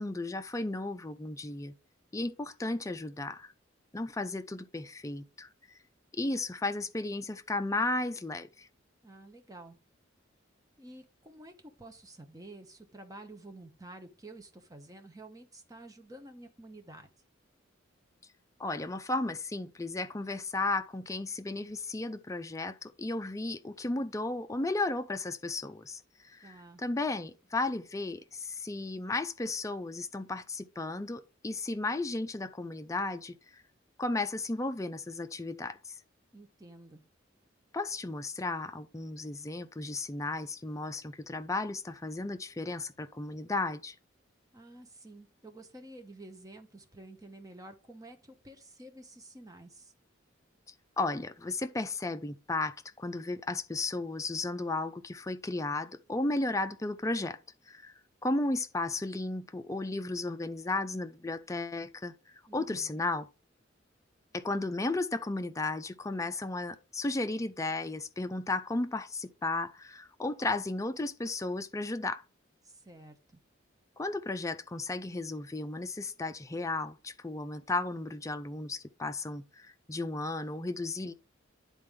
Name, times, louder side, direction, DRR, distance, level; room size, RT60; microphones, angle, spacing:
voice 1, 0.0-1.7 2.1-3.5 3.9-5.5 6.1-8.7 18.6-33.4 34.0-36.0 37.7-44.0 51.0-57.4 57.7-57.9 58.2-62.1 62.5-63.3 64.3-72.2 74.0-81.1, left 2 dB, 15° left, 0.5 m, -34 dB
voice 2, 9.0-9.8 10.8-17.1 26.4-26.8 36.3-37.0 44.5-49.9 62.5-63.0 72.6-73.4, right 2 dB, 20° right, 1.0 m, -50 dB
10.0 x 4.2 x 3.6 m
head